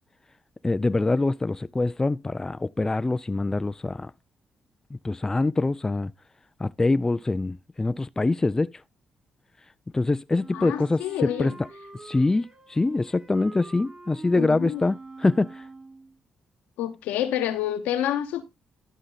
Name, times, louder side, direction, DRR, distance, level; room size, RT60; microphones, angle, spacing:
voice 1, 0.6-4.1 5.0-6.1 6.6-8.7 9.9-11.5 12.0-15.6, left 2 dB, 20° left, 0.4 m, -24 dB
Wind instrument woodwind instrument, 10.3-16.2, right 3 dB, 25° right, 3.5 m, -45 dB
voice 2, 10.5-11.6 14.4-14.8 16.8-18.4, left 11 dB, 90° left, 1.1 m, -28 dB
12.0 x 5.2 x 3.9 m
supercardioid pair, 55°, 3 cm